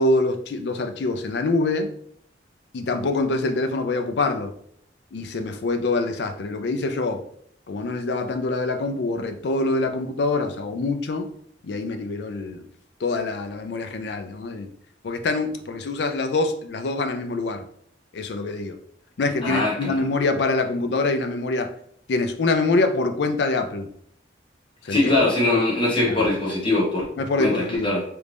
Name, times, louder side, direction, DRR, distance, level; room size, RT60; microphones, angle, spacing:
voice 1, 0.0-1.9 2.7-4.5 5.1-7.2 7.7-11.3 11.6-12.7 13.0-14.7 15.0-17.6 18.1-18.8 19.2-21.7 22.1-23.9 24.8-25.1 26.1-26.2 27.2-28.0, left 2 dB, 65° left, 7 dB, 0.4 m, -25 dB
voice 2, 19.4-20.0 24.9-27.0 27.4-28.0, left 2 dB, 25° left, -5 dB, 1.2 m, -22 dB
3.2 x 2.5 x 3.3 m, 0.64 s
head